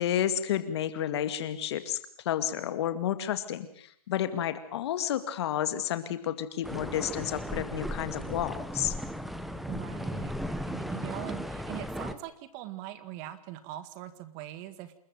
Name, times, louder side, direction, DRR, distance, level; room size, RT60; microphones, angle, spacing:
voice 1, 0.0-2.0 2.3-8.9, left 10 dB, 45° left, 11 dB, 2.3 m, -31 dB
sound 1, 6.6-12.1, equal, ahead, 1.0 m, -36 dB
voice 2, 9.7-15.0, right 14 dB, 30° right, 13 dB, 1.9 m, -42 dB
28.5 x 13.5 x 8.9 m, 0.64 s
hypercardioid pair, 140°, 19 cm